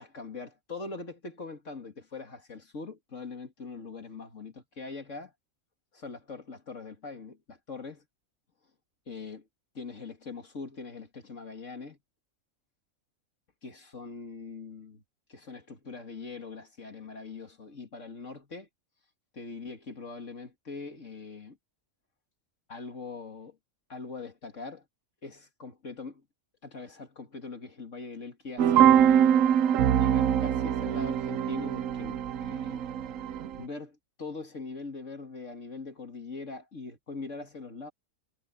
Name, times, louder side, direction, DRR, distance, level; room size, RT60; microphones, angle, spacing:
voice 1, 0.0-5.3 5.9-8.0 9.1-9.4 9.7-12.0 13.6-15.0 15.3-18.7 19.3-21.6 22.7-23.6 23.9-24.8 25.2-26.2 26.6-29.4 30.0-32.8 33.6-37.9, left 4 dB, 65° left, 2.6 m, -42 dB
sound 1, 28.6-33.6, right 9 dB, 75° right, 1.1 m, -23 dB
omnidirectional pair, 1.4 m